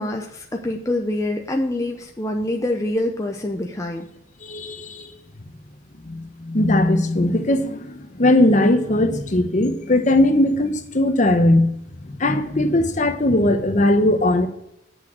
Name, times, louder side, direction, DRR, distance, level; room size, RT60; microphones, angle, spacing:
voice 1, 0.0-4.1, left 1 dB, 15° left, 2 dB, 0.7 m, -25 dB
voice 2, 4.4-5.1 6.0-11.7 12.0-14.5, left 1 dB, 40° left, 7 dB, 1.0 m, -19 dB
8.1 x 6.3 x 6.1 m, 0.79 s
head